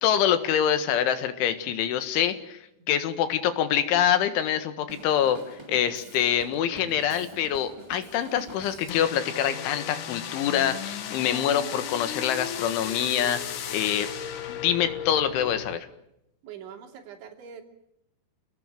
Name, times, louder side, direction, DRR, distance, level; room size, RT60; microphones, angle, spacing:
voice 1, 0.0-2.6 2.9-14.1 14.5-15.9, left 9 dB, 85° left, 10 dB, 4.0 m, -25 dB
Drum kit, 4.9-9.1, right 1 dB, 10° right, 1.6 m, -46 dB
sound 1, 8.9-15.8, left 9 dB, 60° left, 2.2 m, -35 dB
voice 2, 16.4-17.6, right 8 dB, 75° right, 4 dB, 5.2 m, -43 dB
28.5 x 18.5 x 7.6 m, 0.82 s
omnidirectional pair, 5.4 m